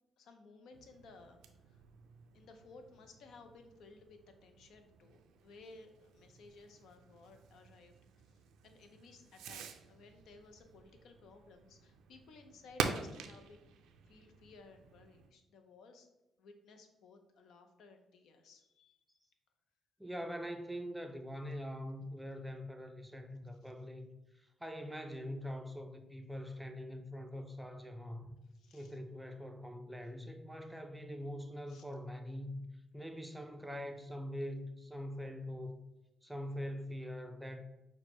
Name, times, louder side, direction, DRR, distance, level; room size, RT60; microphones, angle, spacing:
voice 1, 0.2-1.8 2.3-7.9 8.3-13.7 14.1-16.1 16.4-19.0 23.6-23.7 28.5-29.0 31.7-31.8, left 3 dB, 75° left, 0.5 m, -58 dB
Fireworks, 0.7-15.3, right 6 dB, 90° right, 0.4 m, -47 dB
voice 2, 20.0-24.1 24.3-28.4 28.7-32.7 32.9-35.8 36.2-37.6, equal, 5° right, 0.4 m, -43 dB
6.0 x 2.1 x 3.0 m
cardioid pair, 90°, 0 cm